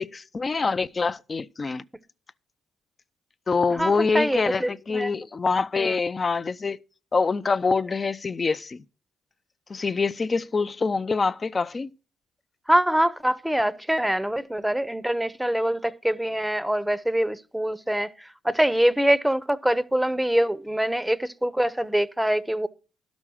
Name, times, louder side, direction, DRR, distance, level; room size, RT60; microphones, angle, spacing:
voice 1, 0.0-1.8 3.5-6.8 7.1-8.8 9.7-11.9, left 4 dB, 35° left, 0.5 m, -25 dB
voice 2, 3.7-5.1 5.8-5.9 12.7-22.7, right 1 dB, 5° right, 0.7 m, -24 dB
12.0 x 6.1 x 6.2 m
supercardioid pair, 65°, 0 cm